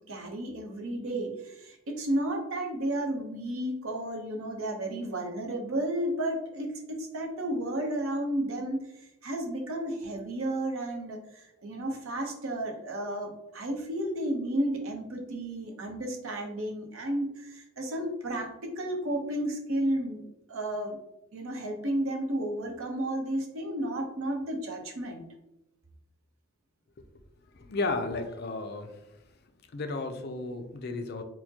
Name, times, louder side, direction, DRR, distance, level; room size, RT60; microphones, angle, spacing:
voice 1, 0.1-8.8 9.2-20.2 20.5-21.0 21.3-25.2, right 1 dB, 80° right, 2 dB, 0.8 m, -32 dB
voice 2, 27.5-29.1 29.7-31.2, left 3 dB, 50° left, 6 dB, 0.4 m, -33 dB
4.4 x 2.1 x 2.8 m, 0.88 s
head